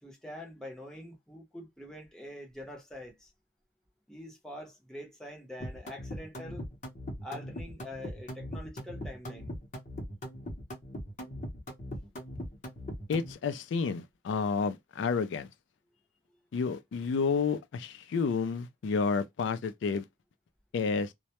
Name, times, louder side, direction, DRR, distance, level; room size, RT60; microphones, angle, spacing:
voice 1, 0.0-3.3 4.1-6.7 7.2-9.5, left 1 dB, 5° left, 0.6 m, -45 dB
sound 1, 5.6-13.3, equal, 40° left, 0.7 m, -40 dB
voice 2, 13.1-15.5 16.5-20.0 20.7-21.1, left 5 dB, 80° left, 0.3 m, -30 dB
2.1 x 2.0 x 2.8 m
head